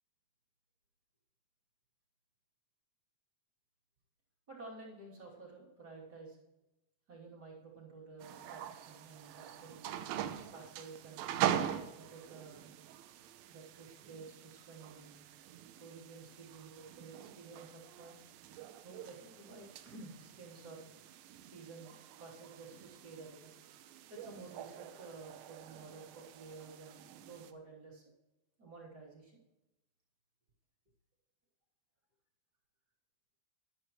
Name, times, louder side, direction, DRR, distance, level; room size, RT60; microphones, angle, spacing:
voice 1, 4.5-6.4 7.1-9.9 10.5-11.3 11.7-12.7 13.5-15.2 15.8-18.2 18.8-20.9 21.4-23.5 24.1-28.0 28.6-29.4, right 3 dB, 30° right, -4 dB, 3.0 m, -52 dB
sound 1, 8.2-27.5, right 10 dB, 80° right, 2.6 m, -43 dB
14.0 x 11.5 x 3.1 m, 0.98 s
omnidirectional pair, 4.3 m